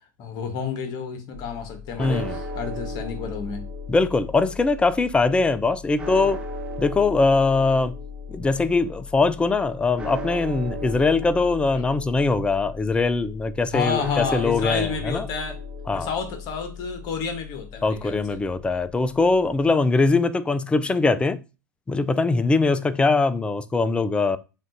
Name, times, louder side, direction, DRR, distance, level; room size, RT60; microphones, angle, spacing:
voice 1, 0.2-3.6 11.7-11.8 13.7-15.6 15.9-18.4, left 6 dB, 45° left, 1.1 m, -30 dB
sound 1, 1.3-19.7, left 2 dB, 10° right, 0.9 m, -36 dB
voice 2, 2.0-2.4 3.9-6.4 6.8-7.9 8.3-15.3 15.9-16.1 17.8-21.4 21.9-24.4, left 3 dB, 10° left, 0.3 m, -22 dB
7.3 x 2.5 x 2.6 m
figure-of-eight pair, 90°, 10 cm